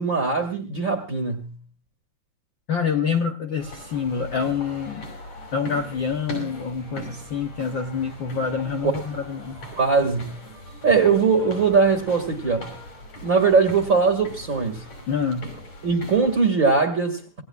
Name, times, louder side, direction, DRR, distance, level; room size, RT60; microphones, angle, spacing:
voice 1, 0.0-1.5 8.8-8.9 9.8-10.3 10.8-12.6 13.2-14.8 15.8-17.4, right 5 dB, 30° right, 4 dB, 1.8 m, -20 dB
voice 2, 2.7-5.1 5.5-9.6 15.1-15.5, left 6 dB, 90° left, 5 dB, 1.0 m, -26 dB
sound 1, 3.6-16.4, equal, 60° left, 6.5 m, -40 dB
27.0 x 18.5 x 2.4 m, 0.33 s
omnidirectional pair, 3.6 m